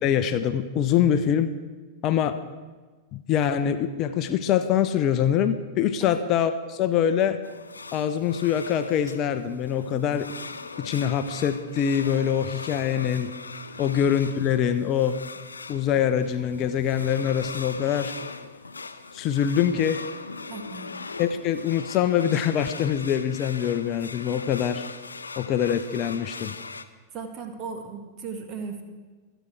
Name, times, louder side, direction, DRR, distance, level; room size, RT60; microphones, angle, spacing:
voice 1, 0.0-1.5 2.0-2.4 3.1-7.4 7.9-10.3 10.8-13.3 13.8-15.2 15.7-18.1 19.1-20.0 21.2-24.8 25.4-26.5, left 9 dB, 35° left, 10 dB, 0.8 m, -24 dB
sound 1, 7.4-26.9, left 4 dB, 75° left, 0.7 m, -40 dB
voice 2, 20.5-20.9 27.1-28.8, right 5 dB, 35° right, 4 dB, 2.2 m, -37 dB
25.5 x 9.2 x 4.8 m, 1.3 s
figure-of-eight pair, 90°, 0 cm